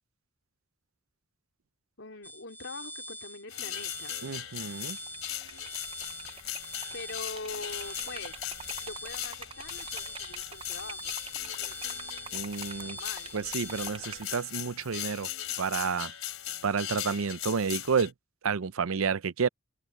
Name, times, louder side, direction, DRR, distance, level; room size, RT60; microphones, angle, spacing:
voice 1, 2.0-4.2 6.9-8.5 8.8-11.2 11.6-12.1 12.8-13.3, left 3 dB, 65° left, 4.1 m, -43 dB
sound 1, 2.2-13.9, left 1 dB, 10° left, 1.4 m, -44 dB
sound 2, 3.5-18.1, left 12 dB, 90° left, 3.3 m, -39 dB
voice 2, 4.2-5.0 12.3-13.0 13.3-15.3 15.6-16.1 16.6-18.1 18.4-19.5, right 5 dB, 90° right, 0.6 m, -30 dB
Liquid, 4.8-14.3, right 6 dB, 25° right, 0.7 m, -47 dB
head